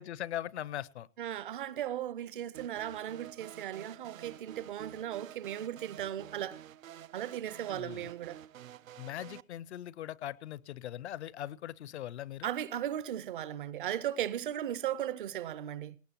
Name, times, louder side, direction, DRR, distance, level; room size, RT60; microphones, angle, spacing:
voice 1, 0.0-1.1 7.7-8.1 9.0-12.5, left 12 dB, 55° left, 0.6 m, -40 dB
voice 2, 1.2-6.6 7.1-8.4 12.4-16.0, right 11 dB, 40° right, 0.7 m, -37 dB
sound 1, 2.5-9.4, right 11 dB, 80° right, 0.7 m, -50 dB
19.0 x 18.0 x 2.9 m
hypercardioid pair, 155°, 40 cm